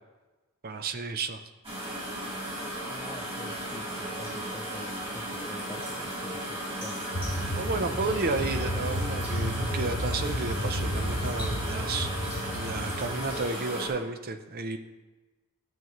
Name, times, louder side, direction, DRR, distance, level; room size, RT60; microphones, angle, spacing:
voice 1, 0.6-1.4 7.5-12.1 12.5-14.8, right 3 dB, 45° right, 8 dB, 0.6 m, -32 dB
sound 1, 1.6-13.9, right 1 dB, 25° right, 3.3 m, -35 dB
voice 2, 2.8-7.1, left 1 dB, 15° left, 7 dB, 0.4 m, -45 dB
sound 2, 7.1-13.4, equal, 50° left, 1.1 m, -32 dB
13.5 x 7.3 x 3.1 m, 1.2 s
head